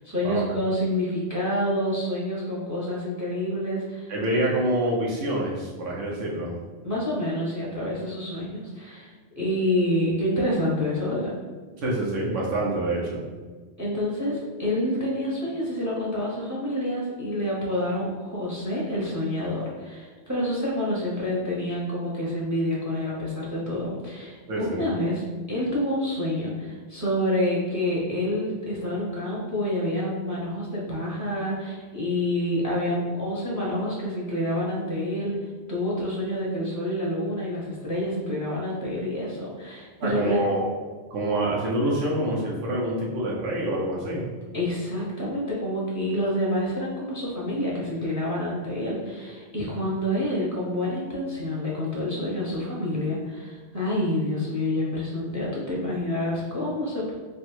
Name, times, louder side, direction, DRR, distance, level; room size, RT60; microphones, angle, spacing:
voice 1, 0.0-4.1 6.8-11.3 13.8-25.2 25.5-35.3 35.7-40.4 44.5-57.1, left 1 dB, 20° right, -5 dB, 0.7 m, -28 dB
voice 2, 4.1-6.6 11.8-13.2 24.5-24.9 40.0-40.7 41.1-44.2, right 1 dB, 85° right, -3 dB, 1.1 m, -26 dB
3.4 x 2.4 x 4.3 m, 1.4 s
omnidirectional pair, 1.2 m